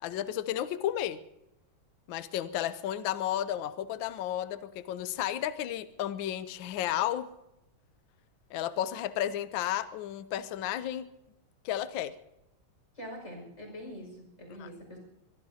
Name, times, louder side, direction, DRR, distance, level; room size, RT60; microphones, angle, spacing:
voice 1, 0.0-1.2 2.1-7.3 8.5-11.1 11.6-12.1 14.6-14.7, left 12 dB, 70° left, 12 dB, 1.4 m, -33 dB
voice 2, 12.9-15.0, equal, 35° left, 1 dB, 5.9 m, -44 dB
23.0 x 22.0 x 2.8 m, 0.89 s
omnidirectional pair, 2.3 m